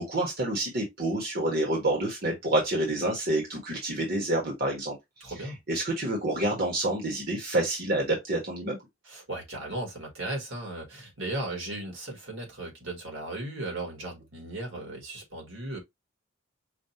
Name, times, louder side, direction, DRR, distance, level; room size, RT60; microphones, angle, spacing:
voice 1, 0.0-5.0 5.7-8.8, right 1 dB, 45° right, 1.3 m, -28 dB
voice 2, 5.2-5.6 9.0-15.8, right 2 dB, 70° right, 1.9 m, -36 dB
5.2 x 2.6 x 2.8 m
head